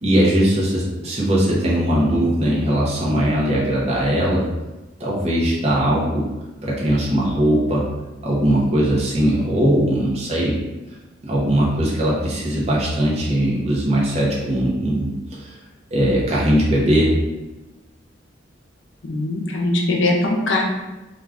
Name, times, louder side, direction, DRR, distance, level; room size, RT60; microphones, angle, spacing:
voice 1, 0.0-4.5 5.0-6.3 6.6-7.9 8.2-10.6 11.2-15.1 15.4-15.6 15.9-17.1, right 1 dB, 35° right, -5 dB, 0.6 m, -19 dB
voice 2, 19.0-20.6, left 2 dB, 70° left, 0 dB, 0.5 m, -21 dB
2.4 x 2.3 x 3.3 m, 1.1 s
head